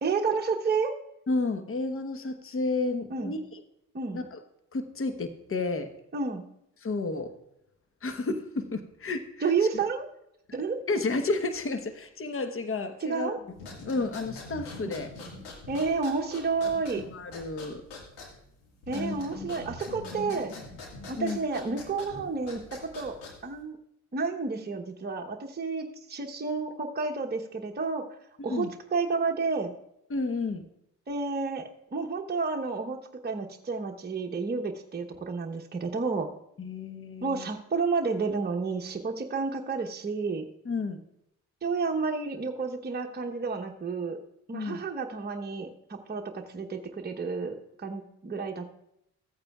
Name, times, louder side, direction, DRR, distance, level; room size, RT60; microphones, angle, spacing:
voice 1, 0.0-0.9 3.1-3.4 3.9-4.2 6.1-6.4 9.4-10.1 10.5-10.8 13.0-13.4 15.7-17.0 18.9-20.5 21.1-23.2 23.4-23.8 24.1-28.0 28.4-29.7 31.1-33.0 33.2-36.3 37.2-40.5 41.6-44.2 44.5-48.8, right 4 dB, 25° right, 2 dB, 1.0 m, -30 dB
voice 2, 1.3-3.6 4.1-4.4 4.7-5.9 6.8-7.3 8.0-9.3 10.9-13.3 13.9-15.1 17.1-17.8 18.9-19.5 21.2-21.4 28.5-28.7 30.1-30.6 36.6-37.5 40.6-41.0 44.5-44.8, left 3 dB, 35° left, 9 dB, 1.1 m, -31 dB
sound 1, 13.5-23.6, left 2 dB, 85° left, 1.9 m, -44 dB
15.0 x 8.8 x 2.4 m, 0.81 s
hypercardioid pair, 50°, 40 cm